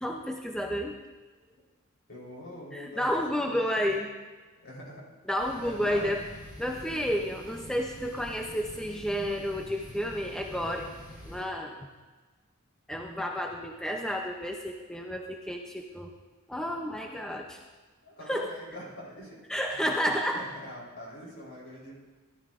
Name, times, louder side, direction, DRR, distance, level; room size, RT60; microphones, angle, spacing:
voice 1, 0.0-1.0 2.7-4.1 5.3-6.2 6.6-10.9 11.3-11.9 12.9-16.1 16.5-17.6 18.3-18.5 19.5-20.4, equal, 5° left, 1 dB, 0.5 m, -31 dB
voice 2, 2.1-3.9 4.6-5.1 5.6-6.1 18.0-19.4 19.7-19.8 20.3-21.9, left 1 dB, 60° left, -5 dB, 3.8 m, -44 dB
sound 1, 5.4-11.4, left 1 dB, 20° left, 4.3 m, -47 dB
17.0 x 12.0 x 2.5 m, 1.3 s
head